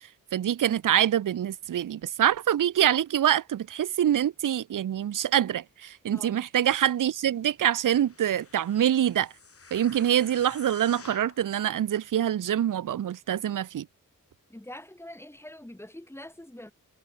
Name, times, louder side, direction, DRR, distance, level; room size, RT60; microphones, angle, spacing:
voice 1, 0.3-9.3 9.7-13.9, right 10 dB, 65° right, 0.6 m, -25 dB
voice 2, 6.1-6.5 14.5-16.7, left 1 dB, 5° left, 6.0 m, -44 dB
sound 1, 7.9-11.5 12.1-12.2, left 4 dB, 45° left, 5.8 m, -49 dB
wide cardioid pair, 160°, 33 cm